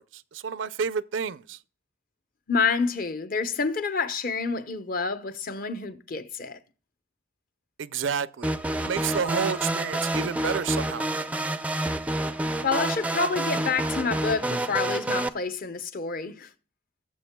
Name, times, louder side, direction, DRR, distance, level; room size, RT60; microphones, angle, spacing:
voice 1, 0.0-1.6 7.8-11.1, right 6 dB, 75° right, 0.5 m, -30 dB
voice 2, 2.5-6.6 12.6-16.5, left 4 dB, 45° left, 0.8 m, -28 dB
sound 1, 8.4-15.3, right 1 dB, 10° right, 0.4 m, -28 dB
17.5 x 7.3 x 2.2 m
head